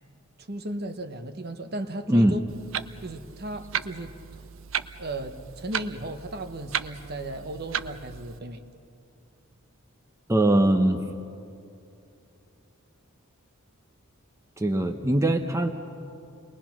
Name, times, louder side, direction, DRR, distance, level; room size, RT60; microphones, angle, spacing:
voice 1, 0.4-2.4 3.0-4.4 5.0-8.6, right 1 dB, 50° right, 8 dB, 1.1 m, -35 dB
Clock, 2.5-8.4, right 8 dB, 65° right, 0.6 m, -35 dB
voice 2, 10.3-11.0 14.6-15.7, right 1 dB, 15° right, 5 dB, 0.8 m, -21 dB
30.0 x 21.5 x 6.0 m, 2.6 s
head